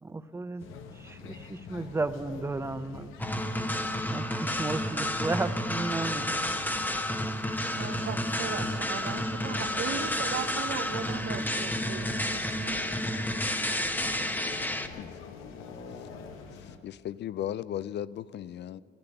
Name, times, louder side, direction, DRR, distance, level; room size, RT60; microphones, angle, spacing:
voice 1, 0.0-3.1 4.1-6.3, right 3 dB, 15° right, 0.6 m, -34 dB
sound 1, 0.6-16.8, left 5 dB, 90° left, 1.1 m, -46 dB
sound 2, 3.2-14.9, left 1 dB, 10° left, 1.0 m, -31 dB
voice 2, 7.8-13.2, right 8 dB, 70° right, 1.0 m, -38 dB
voice 3, 16.6-18.8, left 11 dB, 60° left, 0.4 m, -37 dB
12.5 x 9.8 x 9.8 m
cardioid pair, 90°, 20 cm